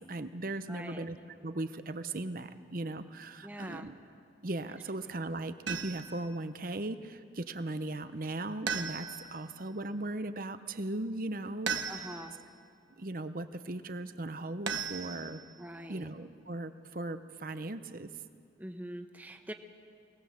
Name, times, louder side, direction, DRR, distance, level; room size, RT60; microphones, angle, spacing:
voice 1, 0.1-1.2 1.4-3.9 4.4-11.9 13.0-15.4 15.9-18.1, right 2 dB, 50° right, 10 dB, 0.8 m, -38 dB
voice 2, 0.7-1.0 3.4-3.9 11.9-12.4 15.6-16.1 18.6-19.5, right 1 dB, 10° right, 6 dB, 1.0 m, -43 dB
sound 1, 5.7-6.2 8.7-9.4 11.7-12.4 14.7-15.5, right 6 dB, 75° right, 1.2 m, -36 dB
23.0 x 19.0 x 7.4 m, 2.3 s
head